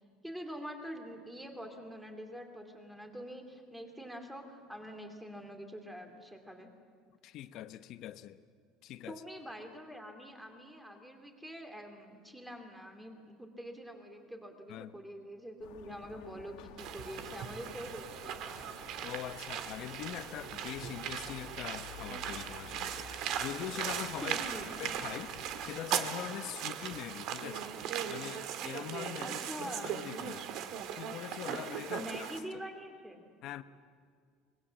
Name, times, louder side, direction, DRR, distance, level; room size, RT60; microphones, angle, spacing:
voice 1, 0.2-6.7 9.1-18.7 24.2-24.7 29.2-29.9 32.0-33.2, equal, 5° right, 2.5 m, -45 dB
voice 2, 7.2-8.4 8.8-9.2 14.7-14.9 19.0-24.4 24.8-27.7 28.1-30.5 30.9-32.3 33.4-33.6, left 12 dB, 45° left, 0.9 m, -43 dB
sound 1, 15.6-25.7, left 8 dB, 75° left, 1.5 m, -53 dB
sound 2, 16.8-32.4, right 9 dB, 50° right, 1.7 m, -39 dB
25.0 x 22.0 x 7.5 m
cardioid pair, 160°, 0 cm